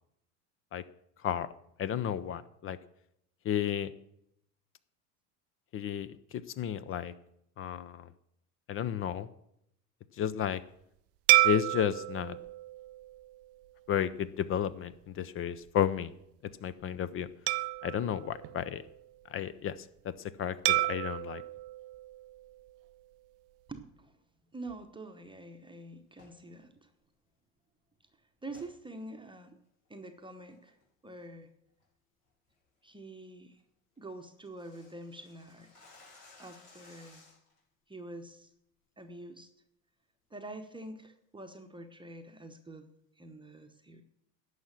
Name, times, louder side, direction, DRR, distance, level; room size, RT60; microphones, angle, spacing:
voice 1, 1.8-2.8 3.4-3.9 5.7-7.1 7.6-8.1 8.7-9.3 10.2-10.6 11.4-12.4 13.9-16.1 16.6-17.3 17.8-18.8 19.3-19.8 20.0-21.4, left 9 dB, 30° left, 16 dB, 0.5 m, -32 dB
sound 1, 11.3-14.0 14.5-14.7 17.5-19.3 20.7-22.9, right 21 dB, 35° right, 0.4 m, -31 dB
voice 2, 23.7-24.1 24.5-26.9 28.4-29.6 29.9-30.8 31.0-31.5 32.8-33.6 34.0-35.9 36.4-37.2 37.9-38.5 39.0-39.5 40.3-42.9 43.2-44.0, right 2 dB, 10° right, 5 dB, 1.0 m, -46 dB
sound 2, 26.1-26.4 28.5-28.7 29.2-29.3 29.9-30.1 30.5-30.8 31.2-31.5 31.8-31.9 32.3-32.5 32.9-33.0 33.3-33.4 33.6-33.7 34.0-37.6, left 3 dB, 80° left, 5.2 m, -58 dB
11.0 x 6.4 x 7.5 m, 0.77 s
hypercardioid pair, 80°, 46 cm